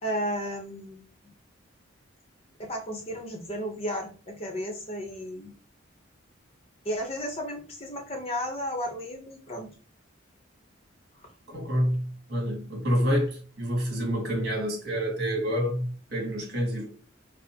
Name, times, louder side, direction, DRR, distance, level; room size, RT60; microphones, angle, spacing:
voice 1, 0.0-1.0 2.6-5.5 6.8-9.7, equal, 30° left, 0.7 m, -33 dB
voice 2, 11.5-12.0 12.3-13.3 13.6-15.8 16.1-16.9, equal, 55° right, 1.6 m, -27 dB
5.0 x 2.0 x 2.8 m
head